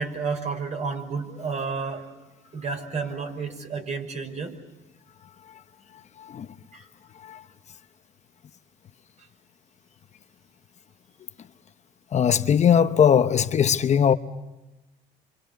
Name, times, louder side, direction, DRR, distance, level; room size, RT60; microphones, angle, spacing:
voice 1, 0.0-2.1 2.5-4.6 6.7-6.9, right 4 dB, 45° right, 5.8 m, -31 dB
voice 2, 6.2-6.5 7.2-7.4 12.1-14.1, left 8 dB, 45° left, 0.9 m, -20 dB
28.0 x 25.5 x 6.8 m
cardioid pair, 110°, 17 cm